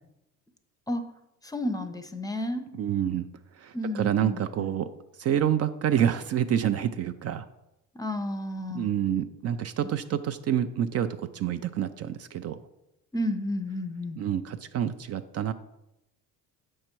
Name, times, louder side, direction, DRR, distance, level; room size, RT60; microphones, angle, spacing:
voice 1, 1.4-2.6 3.7-4.7 7.9-8.9 13.1-14.2, left 1 dB, 10° left, 9 dB, 0.6 m, -31 dB
voice 2, 2.7-3.3 3.5-4.9 5.2-7.5 8.7-12.6 14.2-15.5, right 10 dB, 45° right, 10 dB, 0.4 m, -28 dB
7.6 x 5.5 x 4.5 m, 0.89 s
cardioid pair, 110°, 34 cm